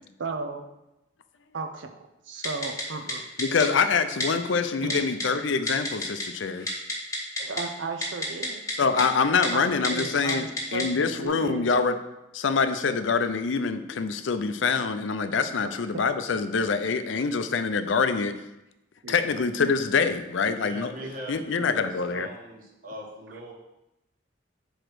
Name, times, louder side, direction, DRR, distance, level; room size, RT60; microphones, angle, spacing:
voice 1, 0.2-0.6 1.5-1.9 2.3-3.2 4.8-5.1 7.4-8.6 9.5-11.6 15.6-15.7 19.0-19.2 21.0-21.1, right 4 dB, 75° right, 7 dB, 0.6 m, -35 dB
Typing, 2.4-2.8 3.1-3.2 3.4-3.7 4.2-4.3 4.9-5.3 5.7-6.2 6.5-7.6 8.0-8.7 9.0-9.1 9.4-9.5 9.8-10.0 10.3-10.8 11.3-11.4, left 2 dB, 15° left, 1.2 m, -29 dB
voice 2, 3.4-6.7 8.8-10.5 10.7-12.0 12.3-18.4 19.1-20.9 21.3-22.3, left 5 dB, 80° left, 10 dB, 0.5 m, -25 dB
voice 3, 20.4-23.5, right 1 dB, 45° right, -1 dB, 1.4 m, -41 dB
5.0 x 4.4 x 6.1 m, 0.92 s
head